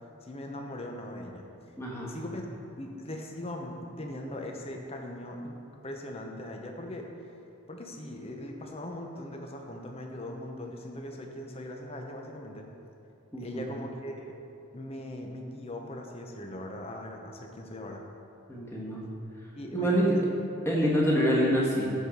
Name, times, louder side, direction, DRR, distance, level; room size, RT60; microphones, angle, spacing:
voice 1, 0.2-1.4 2.1-2.5 2.8-5.6 5.8-7.1 7.7-12.7 13.4-14.4 14.7-18.0 19.6-20.3, left 1 dB, 25° left, 2 dB, 0.8 m, -40 dB
voice 2, 1.8-2.1 13.3-13.6 18.5-19.0 19.7-20.1 20.6-21.9, equal, 10° left, -5 dB, 1.5 m, -26 dB
13.5 x 4.6 x 5.1 m, 2.7 s
head